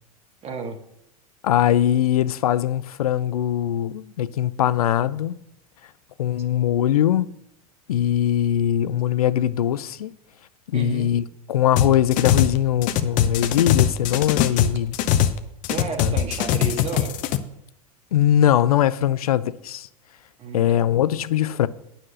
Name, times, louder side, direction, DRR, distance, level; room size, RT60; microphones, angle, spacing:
voice 1, 0.4-0.8 10.7-11.1 15.7-17.1 20.4-20.7, right 4 dB, 35° right, 1.7 m, -31 dB
voice 2, 1.4-5.4 6.2-7.3 7.9-10.1 10.7-15.0 16.0-16.2 18.1-19.9 20.5-21.7, left 11 dB, 75° left, 0.5 m, -21 dB
sound 1, 11.8-12.6 12.8-15.4 15.6-17.4, left 10 dB, 45° left, 0.8 m, -21 dB
9.6 x 5.9 x 6.3 m
hypercardioid pair, 85°, 19 cm